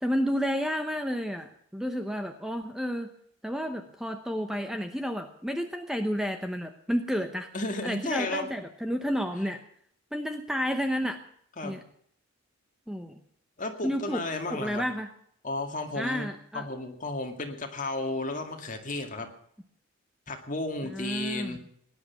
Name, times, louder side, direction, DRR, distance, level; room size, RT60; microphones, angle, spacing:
voice 1, 0.0-3.1 3.4-7.5 7.8-9.6 10.1-11.2 11.6-11.8 12.9-13.2 13.8-14.2 14.5-15.1 16.0-16.7 20.8-21.6, equal, ahead, 6 dB, 0.8 m, -31 dB
voice 2, 7.5-8.5 9.3-9.4 11.6-11.8 13.6-14.8 15.4-19.3 20.3-21.6, left 2 dB, 35° left, 4 dB, 2.1 m, -33 dB
18.0 x 10.5 x 7.0 m, 0.67 s
head